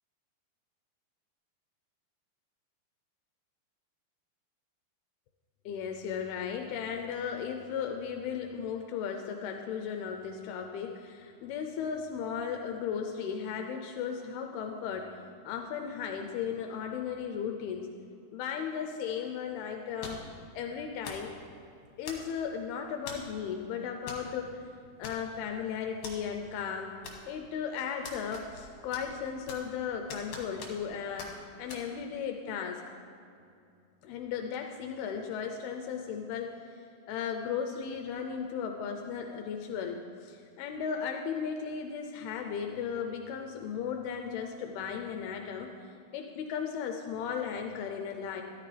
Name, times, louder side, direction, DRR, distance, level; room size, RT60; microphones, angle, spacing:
voice 1, 5.7-15.1 15.4-17.9 18.3-20.2 20.6-21.3 22.0-24.6 25.0-26.9 27.3-32.8 34.0-36.5 36.8-45.7 46.1-48.4, left 7 dB, 80° left, 3 dB, 2.6 m, -36 dB
sound 1, 20.0-20.4 21.0-21.3 22.1-22.5 23.1-23.3 24.1-24.3 24.5-24.6 25.0-25.5 26.0-26.2 27.0-27.5 28.0-28.7 28.9-29.8 30.1-30.9 31.2-31.3 31.7-31.8, left 4 dB, 60° left, 2.9 m, -43 dB
13.5 x 13.5 x 3.3 m, 2.5 s
omnidirectional pair, 4.6 m